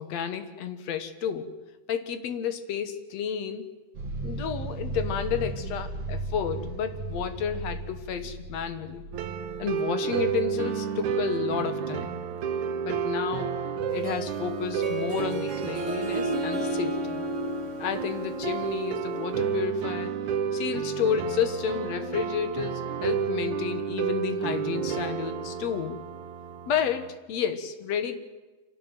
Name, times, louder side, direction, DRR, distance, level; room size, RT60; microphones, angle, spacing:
voice 1, 0.0-1.5 1.9-3.7 4.2-9.1 9.6-12.2 12.8-13.5 13.9-17.2 17.8-20.1 20.5-26.0 26.7-28.2, left 8 dB, 65° left, 10 dB, 2.4 m, -31 dB
sound 1, 3.9-11.3, right 3 dB, 60° right, 3.3 m, -36 dB
sound 2, 9.1-27.1, right 7 dB, 75° right, 2.5 m, -31 dB
Harp, 13.9-19.4, right 2 dB, 30° right, 1.5 m, -33 dB
26.0 x 12.5 x 9.1 m, 1.2 s
omnidirectional pair, 3.4 m